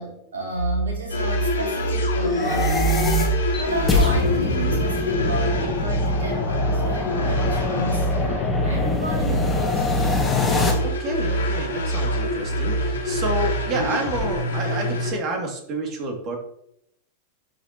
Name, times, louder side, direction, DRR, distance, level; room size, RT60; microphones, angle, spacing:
voice 1, 0.0-9.9, right 2 dB, 65° right, -1 dB, 3.0 m, -33 dB
sound 1, 0.5-13.9, right 2 dB, 90° left, 2.6 m, -26 dB
sound 2, 1.1-15.1, left 2 dB, 65° left, 2.4 m, -29 dB
sound 3, 2.2-10.7, left 3 dB, 10° left, 2.1 m, -24 dB
voice 2, 5.4-5.7 6.8-6.9 10.8-16.4, right 2 dB, 35° right, 2 dB, 2.6 m, -29 dB
12.0 x 6.2 x 3.0 m, 0.74 s
figure-of-eight pair, 90°, 0 cm